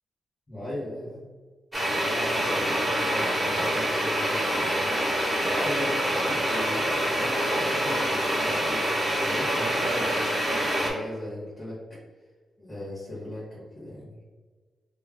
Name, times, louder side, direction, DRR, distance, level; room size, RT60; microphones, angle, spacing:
voice 1, 0.5-1.3 1.8-8.9 9.2-10.2 10.8-11.8 12.6-14.2, left 1 dB, 15° left, -11 dB, 1.3 m, -38 dB
sound 1, 1.7-10.9, equal, 10° right, 1.1 m, -26 dB
3.1 x 2.4 x 3.6 m, 1.4 s
cardioid pair, 85°, 0 cm